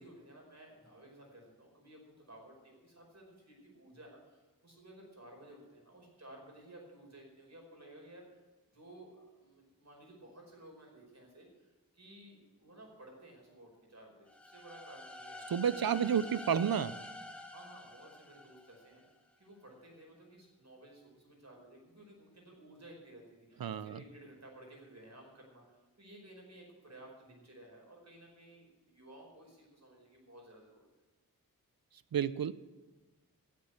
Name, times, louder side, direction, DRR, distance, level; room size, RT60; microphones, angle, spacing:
voice 1, 0.0-8.4 8.7-16.6 17.5-19.0 19.4-30.9, right 1 dB, 50° right, 0 dB, 5.1 m, -55 dB
sound 1, 14.3-19.1, left 2 dB, 5° left, 1.7 m, -48 dB
voice 2, 15.5-17.0 23.6-24.0 32.1-32.5, right 8 dB, 75° right, 16 dB, 0.6 m, -31 dB
13.0 x 8.2 x 8.0 m, 1.2 s
wide cardioid pair, 50°, 35 cm